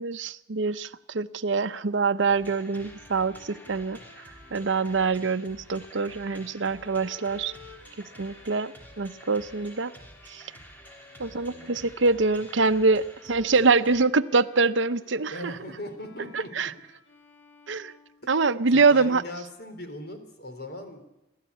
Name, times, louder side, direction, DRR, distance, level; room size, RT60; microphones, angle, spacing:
voice 1, 0.0-4.0 4.5-7.5 8.0-9.9 10.3-10.4 11.2-15.5 16.3-16.7 17.7-17.9 18.3-19.2, right 4 dB, 75° right, 12 dB, 0.8 m, -24 dB
sound 1, 2.3-14.0, right 1 dB, 10° left, 3.1 m, -50 dB
Bowed string instrument, 2.7-18.7, left 3 dB, 85° left, 3.5 m, -54 dB
voice 2, 11.3-11.9 15.3-16.7 18.2-18.3 18.7-21.0, equal, 55° left, 7 dB, 3.8 m, -40 dB
28.5 x 13.0 x 8.4 m, 0.97 s
head